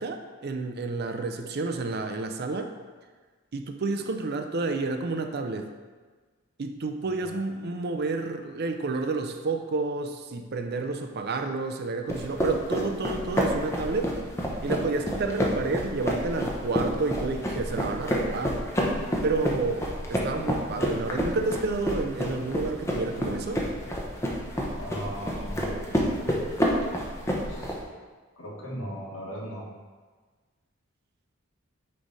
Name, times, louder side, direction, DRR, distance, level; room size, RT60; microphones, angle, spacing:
voice 1, 0.0-2.7 3.5-5.7 6.6-14.1 14.6-18.7 19.2-23.6, right 3 dB, 50° right, 6 dB, 0.5 m, -30 dB
voice 2, 7.1-7.7 24.8-25.7 27.5-27.7 28.4-29.6, equal, 75° left, -3 dB, 1.7 m, -38 dB
sound 1, 12.1-27.8, equal, 15° left, 0.9 m, -29 dB
9.6 x 3.3 x 4.0 m, 1.4 s
head